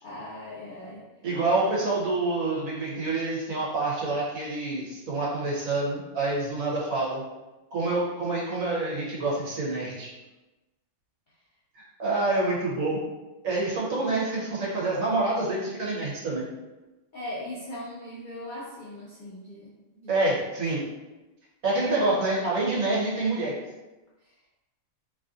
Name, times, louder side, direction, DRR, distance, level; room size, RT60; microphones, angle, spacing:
voice 1, 0.0-1.1 17.1-20.2, left 1 dB, 60° left, -8 dB, 0.5 m, -39 dB
voice 2, 1.2-7.2 7.7-10.1 11.7-13.0 13.4-16.5 20.1-20.8 21.6-23.5, right 2 dB, 75° right, -5 dB, 1.3 m, -27 dB
3.1 x 2.6 x 2.4 m, 1.1 s
omnidirectional pair, 1.5 m